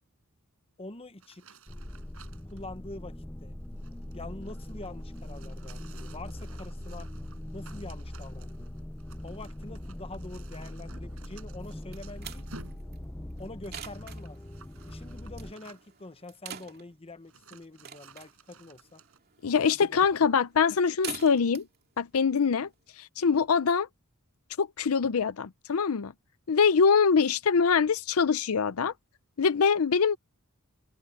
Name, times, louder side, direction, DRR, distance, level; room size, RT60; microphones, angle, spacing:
voice 1, 0.8-1.5 2.5-3.5 4.1-7.1 7.5-8.8 9.2-12.5 13.4-14.4 14.9-19.0 19.5-20.0, left 2 dB, 25° left, 1.0 m, -45 dB
sound 1, 1.2-2.6 3.6-16.1 16.7-16.8 17.2-19.2, right 4 dB, 75° right, 7.9 m, -55 dB
sound 2, 1.7-15.5, left 1 dB, 10° left, 0.6 m, -41 dB
sound 3, 11.6-23.1, right 7 dB, 45° right, 2.5 m, -47 dB
voice 2, 19.4-21.6 22.0-22.7 23.0-23.9 24.6-26.1 26.5-28.9 29.4-30.2, left 6 dB, 75° left, 0.5 m, -24 dB
head